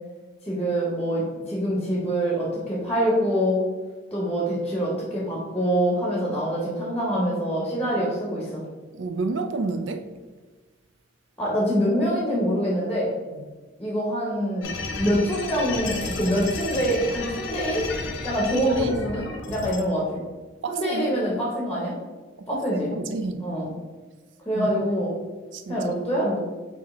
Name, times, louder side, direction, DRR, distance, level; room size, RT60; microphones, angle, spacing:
voice 1, 0.4-3.6 4.1-8.6 11.4-13.1 13.8-14.7 15.0-17.8 18.2-20.2 20.7-21.9 22.5-22.9 23.4-23.7 24.5-25.1 25.7-26.5, equal, 10° left, -4 dB, 0.8 m, -25 dB
voice 2, 8.9-10.1 18.7-19.0 20.6-21.1 22.4-23.4 24.5-24.8 25.5-25.9, right 3 dB, 65° right, 8 dB, 0.4 m, -30 dB
sound 1, 14.6-19.8, left 3 dB, 70° left, 0.6 m, -32 dB
5.1 x 2.8 x 3.5 m, 1.3 s
head